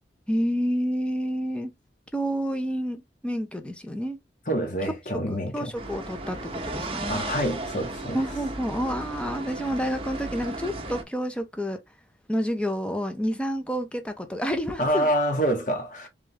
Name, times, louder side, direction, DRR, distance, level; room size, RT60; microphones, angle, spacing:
voice 1, 0.3-1.7 2.1-4.2 5.3-7.2 8.1-11.8 12.3-15.1, equal, 5° left, 0.7 m, -29 dB
voice 2, 4.5-5.7 7.1-8.2 14.8-16.1, equal, 45° left, 1.5 m, -26 dB
Noisy street ambient, 5.7-11.0, right 2 dB, 30° right, 0.8 m, -35 dB
3.6 x 3.3 x 3.4 m
head